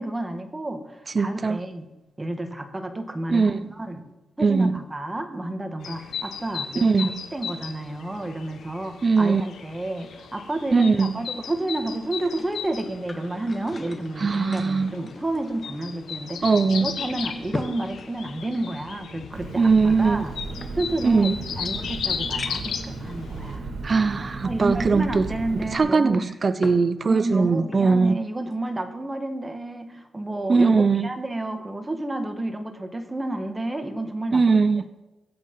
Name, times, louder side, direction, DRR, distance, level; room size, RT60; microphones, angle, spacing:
voice 1, 0.0-1.9 2.2-4.1 4.4-20.3 20.8-23.7 24.4-26.3 27.1-34.6, right 1 dB, 15° right, 5 dB, 2.0 m, -30 dB
voice 2, 1.2-1.6 3.3-3.6 4.4-4.7 6.8-7.1 9.0-9.4 10.7-11.1 14.2-14.9 16.4-16.9 19.6-20.2 21.0-21.4 23.8-25.3 25.7-28.2 30.5-31.1 34.3-34.8, right 4 dB, 40° right, 12 dB, 0.5 m, -20 dB
sound 1, 5.8-23.6, left 7 dB, 85° left, 1.4 m, -36 dB
sound 2, 11.9-16.0 16.3-16.4 17.0-19.0 19.8-21.3 21.8-21.9 22.4-22.8 23.6-23.7 25.9-26.9 27.2-28.1 28.5-28.7, left 3 dB, 30° left, 1.6 m, -40 dB
Engine, 19.3-25.8, right 3 dB, 80° right, 3.1 m, -35 dB
21.5 x 8.4 x 5.6 m, 1.0 s
cardioid pair, 95°, 0 cm